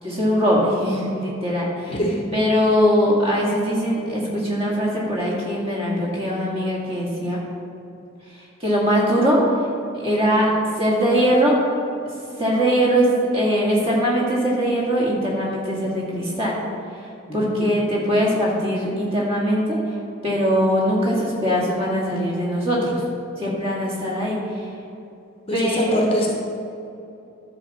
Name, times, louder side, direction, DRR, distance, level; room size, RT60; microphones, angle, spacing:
voice 1, 0.0-2.0 2.3-7.4 8.3-9.7 9.9-10.5 10.8-11.5 12.4-13.1 13.3-16.6 16.9-20.0 20.2-23.0 23.4-24.7 25.5-26.1, equal, 25° right, -5 dB, 2.2 m, -21 dB
voice 2, 1.9-2.2 17.3-17.7 25.5-26.3, equal, 30° left, -1 dB, 1.0 m, -25 dB
11.5 x 4.3 x 7.1 m, 2.7 s
head